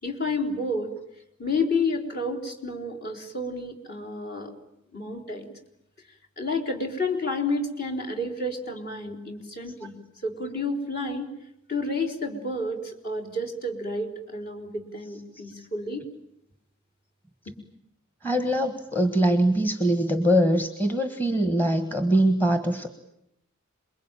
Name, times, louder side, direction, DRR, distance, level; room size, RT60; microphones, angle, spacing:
voice 1, 0.0-0.9 1.4-4.5 4.9-5.5 6.4-9.9 10.2-11.3 11.7-16.0, left 2 dB, 45° left, 0 dB, 3.9 m, -30 dB
voice 2, 18.2-22.9, right 1 dB, 10° left, 7 dB, 1.4 m, -22 dB
28.0 x 22.0 x 9.0 m, 0.80 s
head